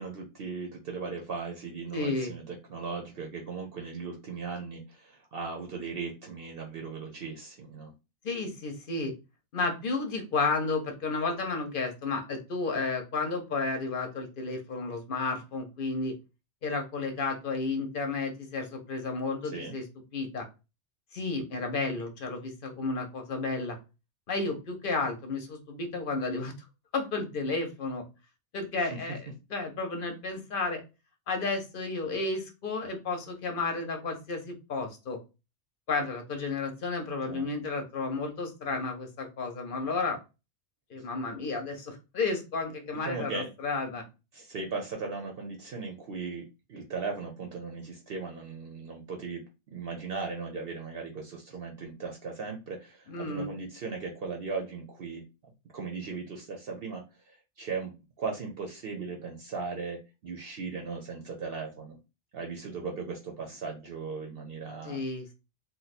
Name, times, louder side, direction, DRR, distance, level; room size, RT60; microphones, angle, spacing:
voice 1, 0.0-7.9 19.5-19.8 37.2-37.5 43.0-43.5 44.3-55.2 55.7-57.9 58.2-62.0 62.3-65.0, right 4 dB, 60° right, 2 dB, 0.8 m, -38 dB
voice 2, 1.9-2.3 8.2-9.1 9.5-16.1 16.6-19.8 20.1-20.5 21.1-23.8 24.3-26.5 26.9-28.1 28.5-30.8 31.3-35.2 35.9-40.2 40.9-44.1 53.1-53.5 64.8-65.3, left 3 dB, 55° left, 5 dB, 0.8 m, -32 dB
2.6 x 2.2 x 4.0 m, 0.28 s
omnidirectional pair, 1.2 m